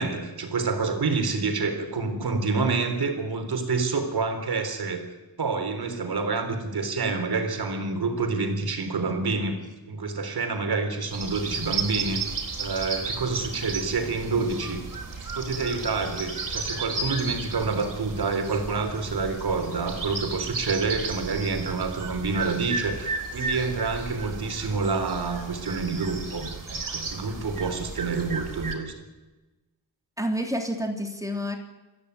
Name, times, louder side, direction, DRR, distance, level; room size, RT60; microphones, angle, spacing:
voice 1, 0.0-5.0 5.4-9.5 9.9-12.2 12.6-14.8 15.3-28.9, right 4 dB, 75° right, 6 dB, 3.9 m, -28 dB
sound 1, 11.1-28.8, right 4 dB, 55° right, 4.5 m, -34 dB
voice 2, 30.2-31.6, equal, 10° right, 3 dB, 3.1 m, -29 dB
23.5 x 15.0 x 9.6 m, 1.1 s
cardioid pair, 80°, 38 cm